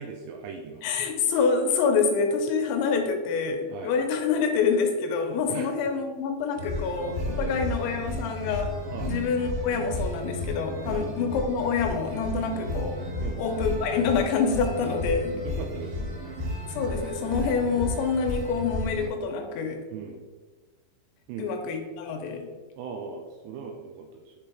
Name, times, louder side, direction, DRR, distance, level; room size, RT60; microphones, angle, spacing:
voice 1, 0.0-0.8 3.7-3.9 5.5-5.7 6.7-6.9 7.4-7.5 8.9-9.1 10.9-11.0 12.4-12.5 13.2-13.4 15.4-16.2 19.9-20.2 21.3-21.5 22.8-24.4, right 6 dB, 85° right, 3 dB, 2.5 m, -39 dB
voice 2, 0.8-8.7 9.1-12.9 13.4-15.4 16.7-19.8 21.4-22.5, left 5 dB, 85° left, 4 dB, 3.0 m, -26 dB
sound 1, 6.6-19.1, left 1 dB, 55° right, 2.3 m, -33 dB
7.3 x 3.5 x 4.4 m, 1.3 s
omnidirectional pair, 5.4 m